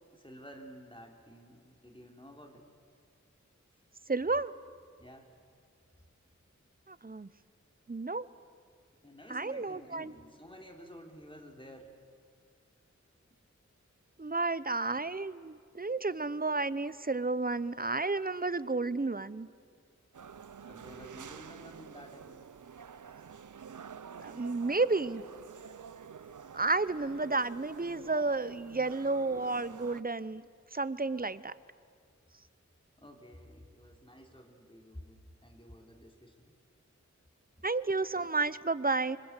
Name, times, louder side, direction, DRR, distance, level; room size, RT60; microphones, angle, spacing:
voice 1, 0.1-2.7 5.0-5.3 9.0-11.9 20.7-22.5 26.2-26.3 31.1-31.3 33.0-36.5, equal, 15° left, 2 dB, 3.4 m, -52 dB
voice 2, 4.1-4.5 6.9-7.3 7.9-8.3 9.3-10.1 14.2-19.5 24.2-25.2 26.5-30.4 30.7-31.5 37.6-39.2, right 3 dB, 30° right, 16 dB, 0.8 m, -31 dB
sound 1, 20.1-30.0, right 7 dB, 85° right, 0.6 m, -48 dB
25.5 x 25.5 x 8.2 m, 2.2 s
wide cardioid pair, 45°, 30 cm